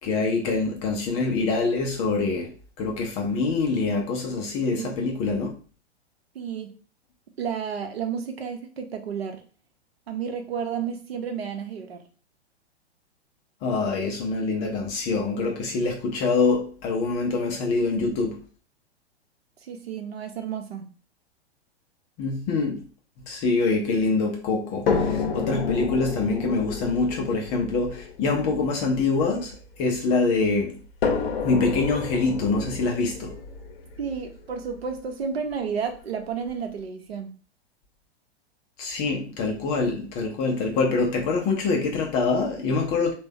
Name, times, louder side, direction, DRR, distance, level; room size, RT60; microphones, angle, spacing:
voice 1, 0.0-5.5 13.6-18.4 22.2-22.8 23.3-30.8 31.4-33.4 38.8-43.1, left 3 dB, 20° left, 0.4 m, -25 dB
voice 2, 4.6-5.0 6.3-6.7 7.4-9.4 10.1-12.0 19.7-20.9 34.0-37.3, right 7 dB, 65° right, 0.8 m, -31 dB
sound 1, 24.9-30.1 31.0-35.0 35.9-36.0 36.5-36.6, left 5 dB, 55° left, 0.7 m, -30 dB
3.3 x 2.3 x 3.4 m
figure-of-eight pair, 105°, 33 cm